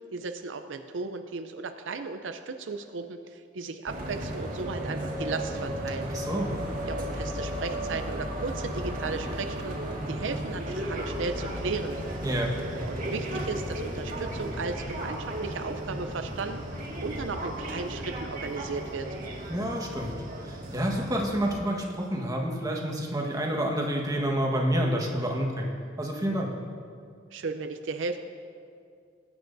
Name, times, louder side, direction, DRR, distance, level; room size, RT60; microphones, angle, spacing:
voice 1, 0.1-6.1 6.9-9.8 10.1-12.0 12.8-19.1 27.3-28.2, right 4 dB, 75° right, 7 dB, 0.5 m, -35 dB
sound 1, 3.9-21.6, right 1 dB, 45° right, 1.8 m, -34 dB
voice 2, 6.1-6.5 12.2-12.5 19.5-20.1 20.4-26.5, equal, 20° right, 0 dB, 1.3 m, -28 dB
20.5 x 9.2 x 2.6 m, 2.3 s
head